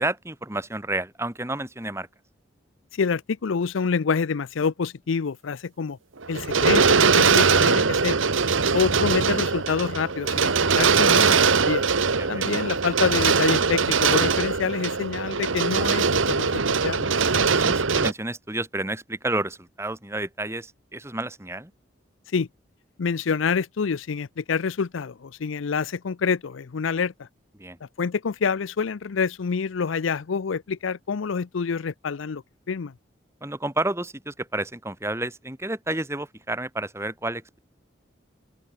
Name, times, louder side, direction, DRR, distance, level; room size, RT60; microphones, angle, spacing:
voice 1, 0.0-2.1 12.2-12.5 17.5-21.7 27.6-27.8 33.4-37.6, right 2 dB, 15° right, 2.5 m, -30 dB
voice 2, 2.9-6.0 6.3-8.2 8.7-11.9 12.3-17.1 22.3-22.5 23.0-27.3 28.0-32.9, left 5 dB, 85° left, 0.5 m, -27 dB
sound 1, 6.2-18.1, right 5 dB, 90° right, 1.4 m, -21 dB
open air
head